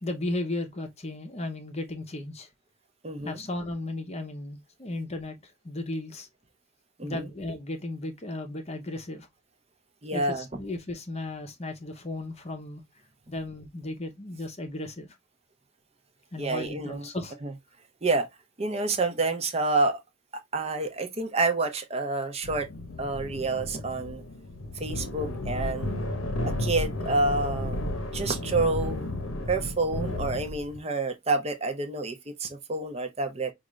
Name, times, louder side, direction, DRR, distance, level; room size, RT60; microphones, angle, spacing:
voice 1, 0.0-2.5 3.2-6.3 7.0-9.3 10.1-12.8 13.3-15.1 16.3-17.3, left 2 dB, 30° left, 0.7 m, -35 dB
voice 2, 3.0-3.4 7.0-7.3 10.0-10.5 16.4-17.1 17.4-17.5 18.0-18.3 18.6-20.0 20.5-22.7 23.0-24.2 24.8-25.9 26.4-27.8 28.1-29.1 29.5-33.5, right 3 dB, 30° right, 0.7 m, -28 dB
sound 1, 22.4-30.8, left 1 dB, 85° left, 0.9 m, -33 dB
4.9 x 2.5 x 3.1 m
head